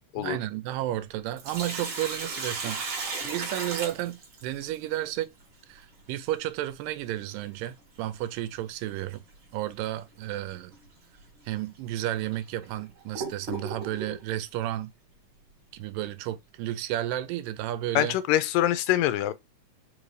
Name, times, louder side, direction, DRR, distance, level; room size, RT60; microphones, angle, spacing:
voice 1, 0.2-3.0 3.2-5.3 5.7-9.2 9.5-10.7 11.5-14.9 15.7-18.2, right 13 dB, 85° right, 2.2 m, -32 dB
Sink (filling or washing), 1.4-4.8 7.2-7.3 9.1-9.3 9.8-9.9 10.7-10.9 11.6-11.7 12.3-14.2, right 3 dB, 50° right, 1.7 m, -35 dB
voice 2, 18.0-19.3, left 13 dB, 85° left, 2.3 m, -24 dB
5.3 x 2.5 x 3.2 m
omnidirectional pair, 3.8 m